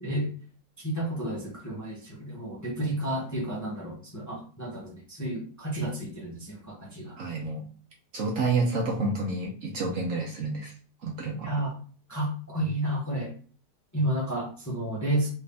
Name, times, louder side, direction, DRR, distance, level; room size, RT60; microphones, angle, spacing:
voice 1, 0.8-7.2 11.4-11.8 12.1-13.3 13.9-15.3, right 1 dB, 15° left, -4 dB, 0.8 m, -31 dB
voice 2, 7.2-7.6 8.1-10.7 11.0-11.5, right 3 dB, 60° right, 0 dB, 1.0 m, -29 dB
3.3 x 2.6 x 3.4 m, 0.41 s
omnidirectional pair, 1.8 m